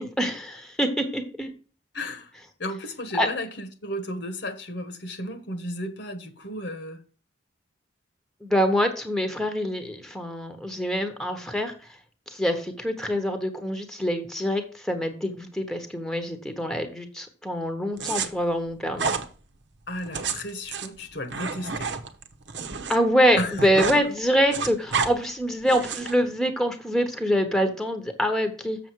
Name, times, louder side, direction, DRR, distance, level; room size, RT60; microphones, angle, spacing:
voice 1, 0.0-1.5 3.2-3.3 8.4-11.7 12.3-19.1 22.9-28.8, equal, ahead, 1.1 m, -25 dB
voice 2, 1.9-2.3 2.6-7.0 19.9-21.9 23.4-23.6, left 1 dB, 60° left, 1.3 m, -34 dB
sound 1, 18.0-18.3 18.9-19.2 20.0-23.0 23.3-24.0 24.3-25.1 25.7-26.1, right 5 dB, 65° right, 1.0 m, -29 dB
7.1 x 7.0 x 4.6 m
head